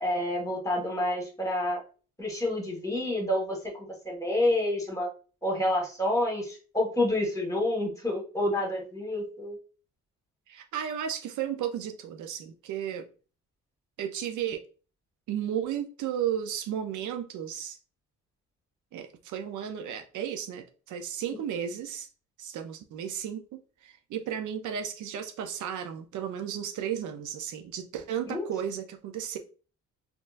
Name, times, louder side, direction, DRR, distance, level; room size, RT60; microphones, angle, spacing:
voice 1, 0.0-1.8 2.2-5.1 5.4-9.5 28.2-28.4, left 1 dB, 10° left, 1.5 m, -28 dB
voice 2, 10.5-13.1 14.0-14.6 15.3-17.8 18.9-22.1 22.4-29.4, right 9 dB, 75° right, 0.6 m, -34 dB
4.3 x 2.6 x 2.5 m
cardioid pair, 90°, 30 cm